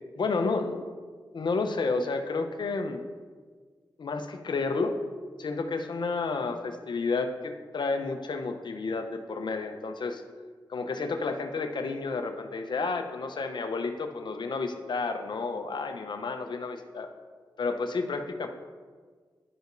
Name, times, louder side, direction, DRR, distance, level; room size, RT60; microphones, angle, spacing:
voice 1, 0.2-0.8 1.3-3.0 4.0-5.0 5.4-10.2 10.7-17.1 17.6-18.5, left 4 dB, 65° left, 6 dB, 0.7 m, -31 dB
10.5 x 5.2 x 2.6 m, 1.5 s
cardioid pair, 40°, 8 cm